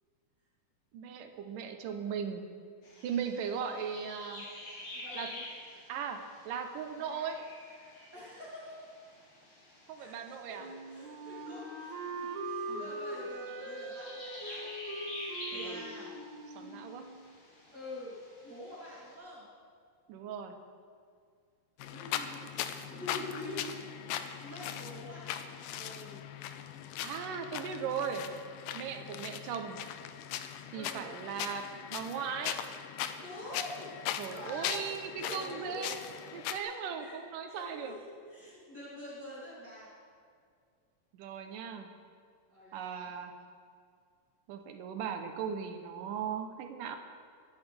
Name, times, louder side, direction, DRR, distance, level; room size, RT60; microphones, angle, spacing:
voice 1, 0.9-2.4 3.0-4.5 5.1-5.3 5.9-6.2 6.5-7.4 9.9-10.7 12.7-12.9 15.5-15.8 16.6-17.1 20.1-20.5 27.0-28.2 28.7-29.8 30.7-32.6 34.2-36.0 36.3-38.0 41.1-41.9 42.7-43.3 44.5-47.0, right 7 dB, 80° right, 5 dB, 2.6 m, -38 dB
sound 1, 2.8-19.2, left 1 dB, 55° left, 4.2 m, -48 dB
voice 2, 4.9-5.4 7.0-7.3 8.1-8.8 10.0-14.7 15.1-16.1 16.6-16.7 17.7-18.2 18.4-19.5 21.9-23.7 24.1-26.2 30.7-31.1 33.2-35.0 35.2-36.4 37.0-37.1 37.5-39.9 42.5-43.1, left 1 dB, 30° right, -10 dB, 3.6 m, -46 dB
Wind instrument woodwind instrument, 10.6-17.4, right 2 dB, 65° right, 3.0 m, -41 dB
sound 2, 21.8-36.6, left 10 dB, 90° left, 2.3 m, -40 dB
23.0 x 10.0 x 3.5 m, 2.2 s
omnidirectional pair, 3.8 m